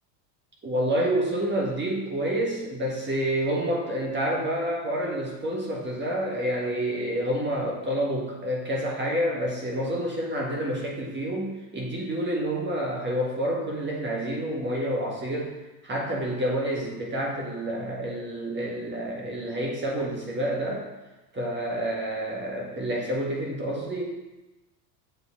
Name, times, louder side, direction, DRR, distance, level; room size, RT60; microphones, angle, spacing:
voice 1, 0.6-15.6 15.8-20.9 21.3-24.1, right 1 dB, 20° right, -2 dB, 1.4 m, -28 dB
7.9 x 3.9 x 3.6 m, 1.1 s
hypercardioid pair, 100°, 49 cm